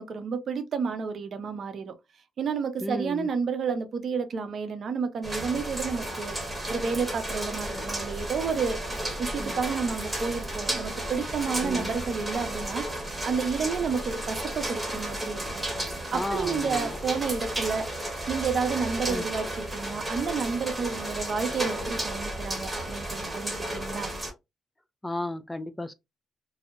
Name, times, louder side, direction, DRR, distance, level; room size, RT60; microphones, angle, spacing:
voice 1, 0.0-1.9 2.4-6.4 6.7-8.8 9.2-12.8 13.2-15.6 16.1-17.8 18.3-24.1, right 5 dB, 55° right, 0.5 m, -30 dB
voice 2, 2.8-3.3 7.7-7.8 9.4-9.6 11.6-11.9 16.1-17.0 19.1-19.2 25.0-25.9, left 1 dB, 10° left, 0.3 m, -33 dB
sound 1, 5.2-24.3, right 1 dB, 10° right, 1.0 m, -33 dB
2.6 x 2.0 x 2.4 m
cardioid pair, 90°, 0 cm